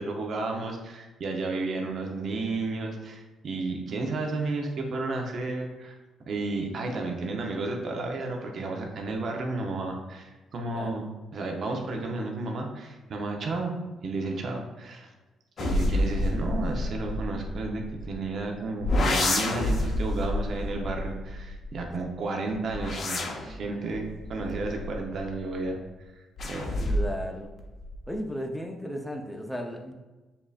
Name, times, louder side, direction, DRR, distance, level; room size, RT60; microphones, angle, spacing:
voice 1, 0.0-6.0 6.3-13.7 14.0-15.1 15.6-25.8 26.1-26.9, right 3 dB, 55° right, 1 dB, 0.7 m, -32 dB
sound 1, 15.6-18.3 18.8-21.9 22.5-25.5 26.4-27.3 27.6-28.2, left 1 dB, 55° left, 0.7 m, -29 dB
voice 2, 26.8-27.5 28.1-29.9, equal, ahead, 1 dB, 0.6 m, -35 dB
7.0 x 2.7 x 2.4 m, 1.2 s
cardioid pair, 90°, 0 cm